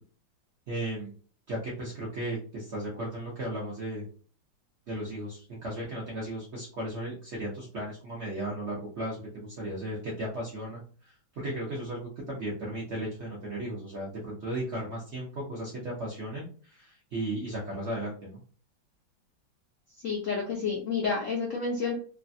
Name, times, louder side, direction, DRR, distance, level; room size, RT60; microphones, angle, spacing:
voice 1, 0.7-1.1 1.5-4.0 4.9-18.4, right 1 dB, 60° right, -4 dB, 0.7 m, -35 dB
voice 2, 20.0-21.9, left 5 dB, 70° left, -1 dB, 0.7 m, -29 dB
3.2 x 2.2 x 2.6 m, 0.40 s
omnidirectional pair, 2.1 m